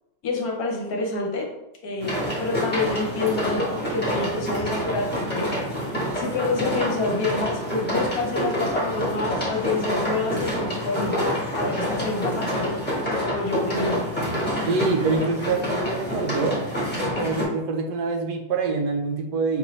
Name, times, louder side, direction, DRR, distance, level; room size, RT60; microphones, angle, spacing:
voice 1, 0.2-1.5 1.8-5.5 6.1-12.7 13.1-14.0, left 3 dB, 65° left, 0 dB, 1.1 m, -27 dB
sound 1, 2.0-17.4, equal, 5° left, 1.0 m, -27 dB
voice 2, 14.7-16.6 17.2-19.6, right 4 dB, 75° right, 3 dB, 1.2 m, -25 dB
5.3 x 2.6 x 3.1 m, 0.91 s
omnidirectional pair, 1.8 m